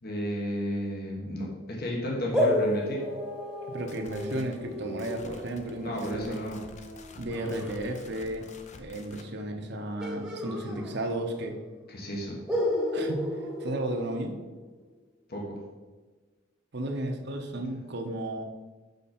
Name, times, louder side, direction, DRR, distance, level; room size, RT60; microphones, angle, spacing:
voice 1, 0.0-3.0 5.8-6.6 7.4-7.6 11.9-12.4 15.3-15.6, equal, 55° left, -2 dB, 1.3 m, -33 dB
sound 1, 2.3-7.8 10.0-11.5 11.7-11.8 12.5-14.7, left 1 dB, 5° right, 1.1 m, -32 dB
sound 2, 3.6-9.3, left 3 dB, 40° left, 0.6 m, -50 dB
voice 2, 3.7-6.4 7.2-8.5 8.8-11.6 12.9-14.3 16.7-18.4, right 1 dB, 60° right, 4 dB, 0.9 m, -34 dB
6.5 x 5.2 x 4.3 m, 1.3 s
head